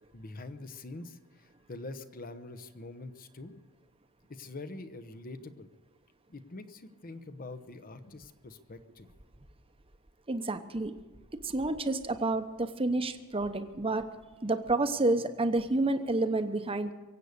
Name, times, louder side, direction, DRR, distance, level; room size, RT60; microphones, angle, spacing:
voice 1, 0.1-3.6 4.3-5.7 6.3-9.1, left 2 dB, 40° left, 10 dB, 0.9 m, -45 dB
voice 2, 10.3-10.9 11.3-14.1 14.4-16.9, right 2 dB, 25° right, 9 dB, 0.9 m, -29 dB
23.5 x 8.3 x 6.7 m, 1.2 s
head